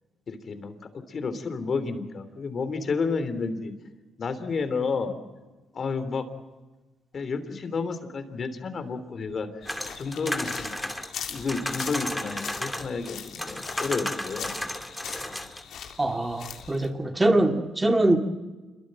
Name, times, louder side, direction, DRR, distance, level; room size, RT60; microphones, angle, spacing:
voice 1, 0.3-3.7 4.2-5.2 5.7-6.2 7.1-9.5 9.9-10.8 11.3-14.5, left 4 dB, 45° left, 10 dB, 3.3 m, -31 dB
sound 1, 9.6-16.9, left 8 dB, 70° left, 3.3 m, -41 dB
sound 2, 9.7-13.1 13.4-15.6, left 1 dB, 5° left, 2.5 m, -33 dB
voice 2, 16.0-18.2, right 1 dB, 15° right, 5 dB, 2.4 m, -23 dB
27.0 x 23.0 x 7.7 m, 1.2 s
cardioid pair, 90°, 0 cm